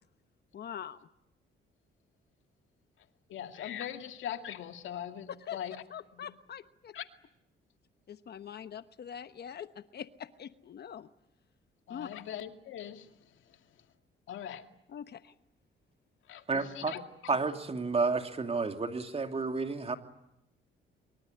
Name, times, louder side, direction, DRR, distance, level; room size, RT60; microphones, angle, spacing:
voice 1, 0.5-1.1 5.5-5.6 5.9-6.9 8.1-11.1 11.9-12.1 14.9-15.3, left 8 dB, 55° left, 11 dB, 1.1 m, -43 dB
voice 2, 3.3-5.8 6.1-6.3 6.9-7.1 11.9-13.8 14.3-14.7 16.3-17.0, left 10 dB, 80° left, 6 dB, 2.2 m, -41 dB
voice 3, 16.5-16.9 17.3-20.0, right 4 dB, 30° right, 6 dB, 2.8 m, -31 dB
24.5 x 23.5 x 9.5 m, 0.83 s
cardioid pair, 90°, 20 cm